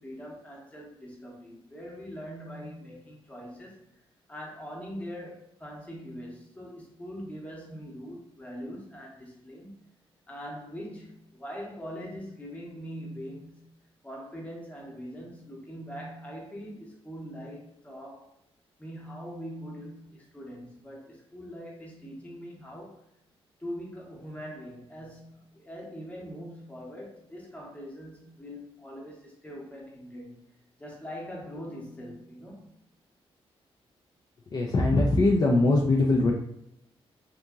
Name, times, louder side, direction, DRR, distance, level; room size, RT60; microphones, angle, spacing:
voice 1, 0.0-3.8 4.3-9.8 10.3-13.8 14.0-18.3 18.8-23.0 23.6-30.5 30.8-32.8, equal, 15° left, -2 dB, 0.8 m, -42 dB
voice 2, 34.5-36.3, left 2 dB, 40° left, -1 dB, 0.4 m, -22 dB
2.8 x 2.6 x 2.3 m, 0.77 s
cardioid pair, 110°, 10 cm